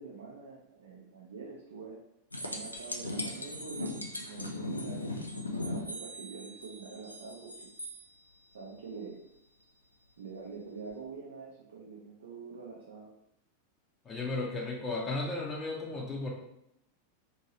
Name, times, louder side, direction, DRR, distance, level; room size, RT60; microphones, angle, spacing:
voice 1, 0.0-2.0 2.4-7.5 8.5-9.2 10.2-13.1, right 5 dB, 65° right, -3 dB, 0.5 m, -46 dB
sound 1, 2.3-8.0 10.9-11.0, left 1 dB, 85° left, 0.4 m, -38 dB
voice 2, 14.1-16.3, left 3 dB, 20° left, -2 dB, 0.6 m, -34 dB
2.7 x 2.7 x 2.9 m, 0.79 s
figure-of-eight pair, 90°, 0 cm